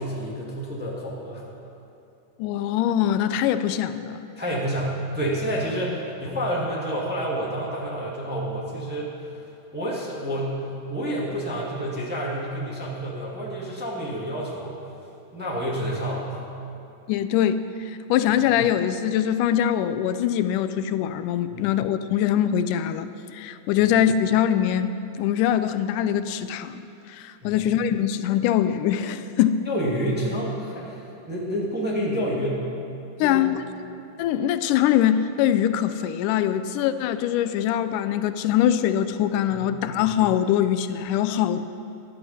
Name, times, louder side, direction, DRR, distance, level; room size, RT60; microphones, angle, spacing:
voice 1, 0.0-1.4 4.4-9.1 9.7-10.6 10.9-14.7 15.3-16.4 21.5-21.7 23.7-23.8 27.4-27.6 29.6-32.6 33.2-33.5 39.5-40.0, equal, 5° right, -5 dB, 1.3 m, -29 dB
voice 2, 2.4-4.2 17.1-29.7 33.2-33.6 34.2-41.6, left 10 dB, 90° left, 11 dB, 2.1 m, -23 dB
17.0 x 11.0 x 4.3 m, 2.9 s
omnidirectional pair, 3.6 m